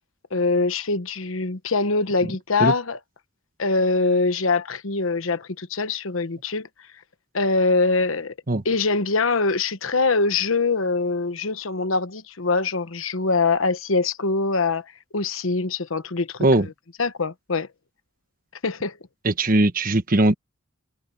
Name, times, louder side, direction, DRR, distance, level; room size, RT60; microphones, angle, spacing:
voice 1, 0.3-3.0 3.6-6.7 7.3-8.3 8.6-14.8 15.1-16.4 17.0-17.7 18.6-18.9, left 3 dB, 75° left, 1.1 m, -23 dB
voice 2, 19.2-20.4, right 2 dB, 45° right, 1.3 m, -19 dB
head